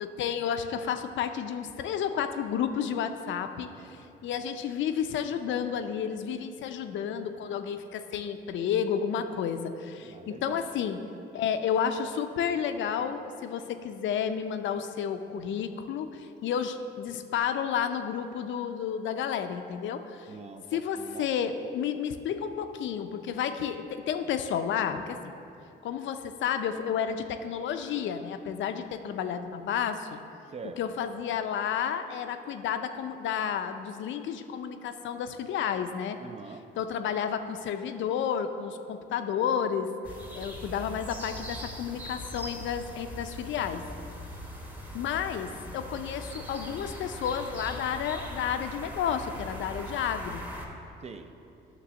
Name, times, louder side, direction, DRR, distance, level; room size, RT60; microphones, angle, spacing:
voice 1, 0.0-11.0 11.3-20.3 20.7-25.3 25.8-30.2 30.8-36.2 36.8-39.9 40.3-43.8 44.9-50.5, left 8 dB, 70° left, 8 dB, 0.5 m, -31 dB
voice 2, 10.0-10.7 20.3-21.3 30.5-30.8 36.2-36.6 51.0-51.3, right 5 dB, 35° right, 8 dB, 0.5 m, -44 dB
sound 1, 40.0-50.7, equal, 10° right, 1.1 m, -41 dB
9.4 x 3.3 x 6.2 m, 2.7 s
cardioid pair, 90°, 20 cm